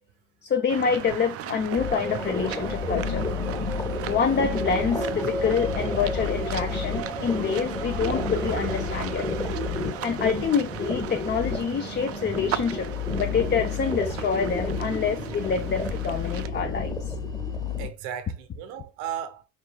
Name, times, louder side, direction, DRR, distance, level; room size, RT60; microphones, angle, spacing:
voice 1, 0.4-3.2 4.1-9.3 10.0-12.9 13.2-17.1, left 6 dB, 30° left, 0.6 m, -27 dB
sound 1, 0.7-16.5, right 12 dB, 45° right, 0.4 m, -37 dB
sound 2, 1.8-17.9, left 3 dB, 10° left, 1.1 m, -30 dB
voice 2, 17.8-19.5, right 9 dB, 75° right, 0.9 m, -36 dB
4.7 x 3.7 x 2.3 m
hypercardioid pair, 70°, 35 cm